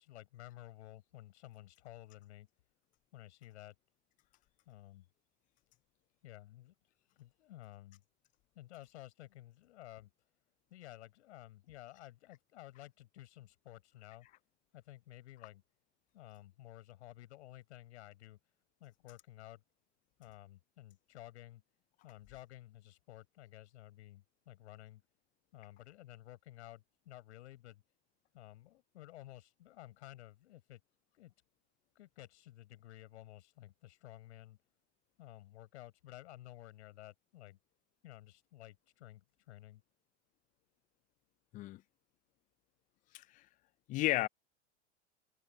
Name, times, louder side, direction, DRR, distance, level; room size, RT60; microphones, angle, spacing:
voice 1, 0.0-2.5 3.1-3.8 4.6-5.1 6.2-6.7 7.2-8.0 8.5-10.1 10.7-14.3 14.7-15.6 16.1-18.4 18.8-19.6 20.2-21.6 22.0-25.0 25.5-27.8 28.3-30.8 31.1-31.3 31.9-34.6 35.2-37.6 38.0-39.8, left 15 dB, 70° left, 6.4 m, -53 dB
voice 2, 43.9-44.3, left 17 dB, 25° left, 0.3 m, -33 dB
hypercardioid pair, 100°, 35 cm